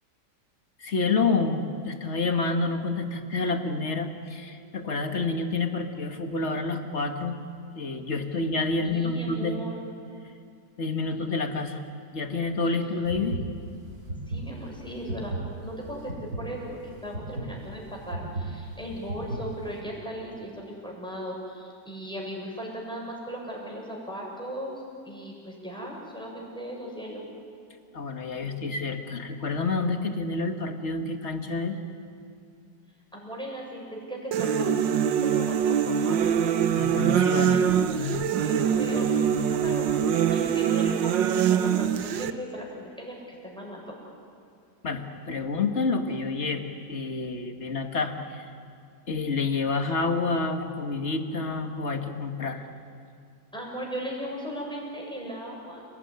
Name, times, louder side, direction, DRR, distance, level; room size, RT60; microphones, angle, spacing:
voice 1, 0.8-7.4 7.8-9.6 10.8-11.8 12.1-13.4 27.9-31.8 36.8-37.6 37.9-38.2 44.8-48.5 49.1-52.6, left 3 dB, 40° left, 5 dB, 2.0 m, -28 dB
voice 2, 8.8-9.8 14.3-15.3 15.6-27.3 33.1-34.8 35.1-36.2 37.5-38.2 38.4-43.9 53.5-55.8, equal, ahead, -2 dB, 7.1 m, -37 dB
sound 1, 13.0-19.8, right 2 dB, 50° right, 4.5 m, -35 dB
sound 2, 34.3-42.3, right 8 dB, 85° right, 1.7 m, -24 dB
30.0 x 19.0 x 9.7 m, 2.4 s
omnidirectional pair, 1.9 m